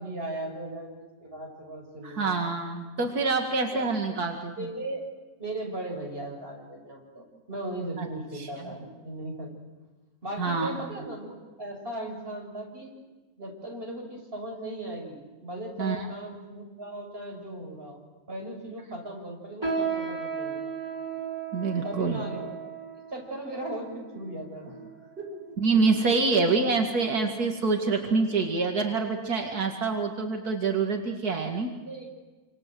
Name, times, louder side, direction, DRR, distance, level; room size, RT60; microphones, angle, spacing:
voice 1, 0.0-2.4 3.7-3.9 4.6-5.1 5.4-9.5 10.2-12.9 13.4-20.7 21.8-22.5 23.1-24.8 25.2-25.4 26.0-26.5 31.9-32.1, right 1 dB, 40° right, 1 dB, 6.8 m, -37 dB
voice 2, 2.0-4.5 8.0-8.1 8.3-8.5 10.4-10.8 15.8-16.1 21.5-22.2 25.6-31.7, right 4 dB, 85° right, 2 dB, 2.7 m, -26 dB
sound 1, 19.6-25.3 26.0-26.1 26.8-27.1 27.5-27.7 28.4-28.5, right 5 dB, 15° right, 5.9 m, -35 dB
28.0 x 27.0 x 7.8 m, 1.2 s
omnidirectional pair, 1.6 m